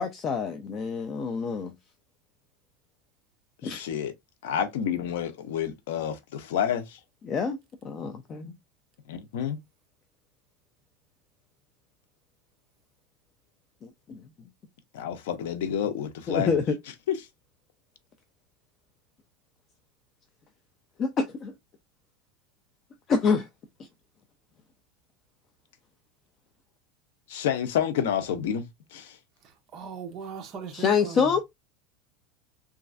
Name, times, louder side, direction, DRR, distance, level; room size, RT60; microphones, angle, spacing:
voice 1, 0.0-1.7 3.6-3.8 7.2-7.6 7.8-8.5 13.8-14.2 16.3-16.8 21.0-21.5 23.1-23.5 30.7-31.4, left 5 dB, 25° left, 0.3 m, -26 dB
voice 2, 3.6-4.1 4.4-7.0 9.1-9.6 14.9-16.5 17.1-17.2 27.3-29.2, left 9 dB, 80° left, 0.6 m, -29 dB
voice 3, 29.7-31.4, right 6 dB, 30° right, 0.6 m, -39 dB
3.1 x 2.4 x 2.4 m
supercardioid pair, 175°, 0 cm